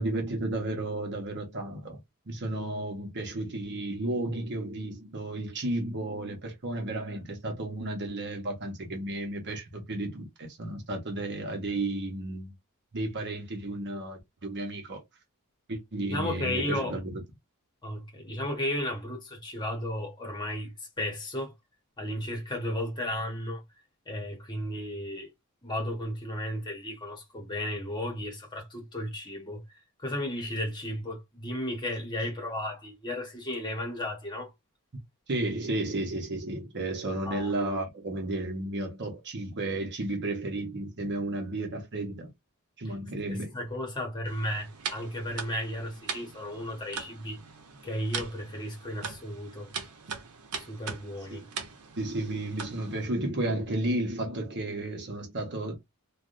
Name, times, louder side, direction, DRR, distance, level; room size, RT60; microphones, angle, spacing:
voice 1, 0.0-2.0 2.3-12.5 12.9-15.0 15.7-17.2 35.3-42.3 42.8-43.5 51.3-55.8, right 2 dB, 50° right, 0.9 m, -33 dB
voice 2, 16.1-17.0 17.8-21.5 22.0-23.6 24.1-25.3 25.6-29.6 30.0-34.5 37.2-37.5 43.3-47.4 47.8-49.7 50.6-51.4, left 1 dB, 20° left, 1.1 m, -34 dB
sound 1, 44.3-53.1, right 5 dB, 90° right, 0.8 m, -41 dB
3.4 x 2.3 x 2.5 m
head